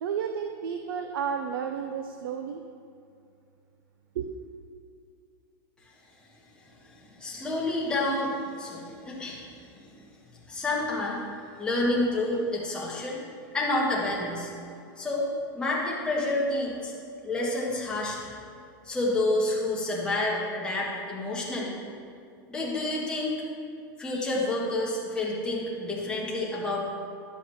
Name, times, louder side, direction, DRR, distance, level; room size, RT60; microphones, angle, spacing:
voice 1, 0.0-2.6 4.1-4.3, right 7 dB, 80° right, 6 dB, 0.5 m, -32 dB
voice 2, 7.2-9.4 9.7-9.8 10.5-11.2 11.6-13.2 13.5-14.5 15.0-15.3 15.5-16.9 17.2-18.3 18.8-21.7 22.5-23.4 24.0-26.8, left 2 dB, 10° left, -5 dB, 1.5 m, -29 dB
11.0 x 7.1 x 3.0 m, 2.4 s
supercardioid pair, 150°, 12 cm